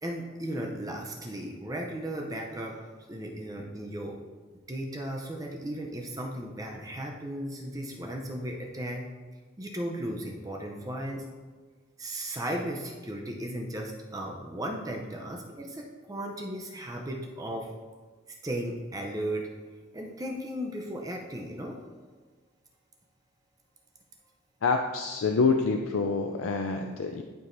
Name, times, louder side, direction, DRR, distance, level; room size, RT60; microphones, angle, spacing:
voice 1, 0.0-2.8 3.1-4.2 4.7-9.1 9.6-11.2 12.0-17.7 18.4-19.5 19.9-21.8, right 1 dB, 15° right, 0 dB, 0.6 m, -35 dB
voice 2, 24.6-27.2, left 4 dB, 80° left, 4 dB, 0.4 m, -26 dB
11.5 x 4.7 x 2.6 m, 1.4 s
head